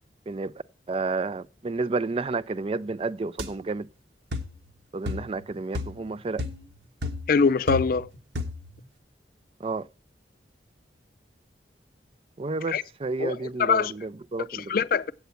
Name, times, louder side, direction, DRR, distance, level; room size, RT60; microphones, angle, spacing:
voice 1, 0.9-3.9 4.9-6.4 9.6-9.8 12.4-14.7, right 3 dB, 30° right, 0.4 m, -30 dB
sound 1, 3.4-3.5 4.3-4.6 5.1-5.4 5.7-6.1 6.4-6.7 7.0-8.1 8.4-8.7, left 3 dB, 80° right, 1.3 m, -33 dB
voice 2, 7.3-8.1 12.7-12.8 13.2-13.9 14.5-15.1, left 5 dB, 55° left, 0.4 m, -23 dB
8.2 x 8.1 x 5.7 m
head